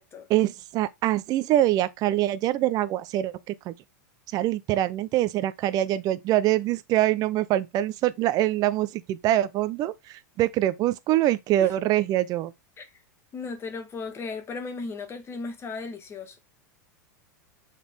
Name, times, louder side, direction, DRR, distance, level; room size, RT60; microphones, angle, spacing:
voice 1, 0.3-3.7 4.3-12.5, right 14 dB, 45° right, 0.8 m, -24 dB
voice 2, 13.3-16.4, left 4 dB, 25° left, 1.7 m, -36 dB
7.1 x 4.2 x 3.6 m
hypercardioid pair, 105°, 9 cm